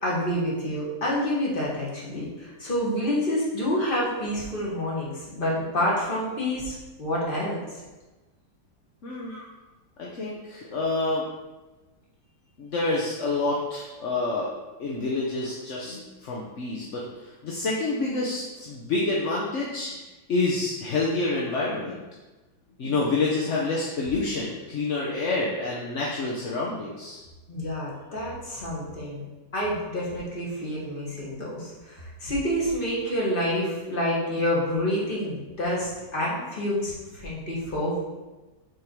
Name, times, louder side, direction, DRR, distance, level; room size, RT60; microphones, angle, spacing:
voice 1, 0.0-7.8 9.3-9.5 22.8-23.0 27.5-29.2 29.5-38.0, equal, 30° left, -5 dB, 1.9 m, -28 dB
voice 2, 9.0-9.4 10.0-11.3 12.6-14.5 14.8-20.0 20.3-22.0 22.8-27.2, left 3 dB, 50° left, -4 dB, 1.0 m, -28 dB
7.7 x 3.7 x 4.6 m, 1.1 s
omnidirectional pair, 2.0 m